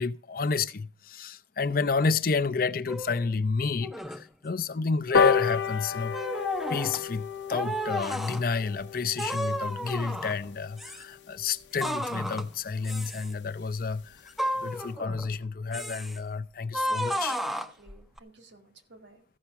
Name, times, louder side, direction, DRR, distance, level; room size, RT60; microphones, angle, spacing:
voice 1, 0.0-6.2 6.7-14.3 14.6-17.4, left 4 dB, 50° left, 0.6 m, -30 dB
sound 1, 2.9-3.3 3.8-4.2 4.9-5.5 6.1-7.0 7.5-8.4 9.2-10.5 10.8-11.0 11.8-12.5 12.9-13.3 14.3-15.4 15.7-16.2 16.7-18.2, equal, ahead, 0.5 m, -33 dB
sound 2, 5.1-11.9 12.3-12.4 12.7-12.8 13.1-13.2 13.5-13.6 13.9-14.2 14.6-14.7, left 6 dB, 80° left, 0.8 m, -31 dB
voice 2, 16.9-19.2, right 2 dB, 80° right, 2.1 m, -54 dB
14.5 x 5.8 x 6.9 m
head